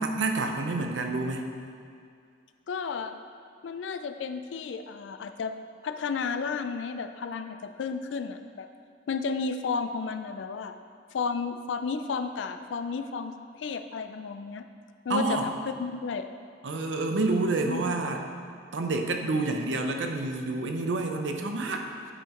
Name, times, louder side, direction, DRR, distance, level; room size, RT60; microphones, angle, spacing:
voice 1, 0.0-1.5 15.1-15.5 16.6-18.2 18.7-21.9, right 3 dB, 85° right, 4 dB, 0.6 m, -28 dB
voice 2, 2.7-3.2 3.6-5.5 5.8-8.7 9.1-10.7 11.1-14.7 15.1-15.5 15.8-16.3 17.7-18.0, left 5 dB, 80° left, 9 dB, 0.4 m, -32 dB
10.0 x 5.7 x 3.0 m, 2.3 s
head